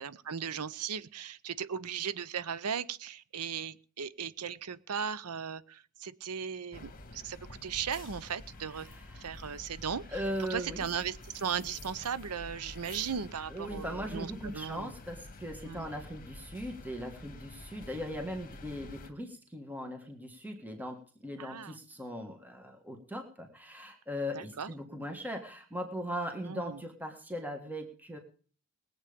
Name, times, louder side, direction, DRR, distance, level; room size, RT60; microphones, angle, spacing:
voice 1, 0.0-8.9 9.1-10.2 10.5-14.9 15.6-15.9 21.4-21.8 24.3-24.7 26.4-26.8, right 7 dB, 90° right, 17 dB, 0.7 m, -37 dB
sound 1, 6.7-19.1, left 2 dB, 40° left, 1.5 m, -48 dB
voice 2, 8.8-9.2 10.1-10.8 13.5-28.2, equal, 10° right, 4 dB, 1.6 m, -39 dB
20.0 x 8.3 x 5.1 m, 0.43 s
head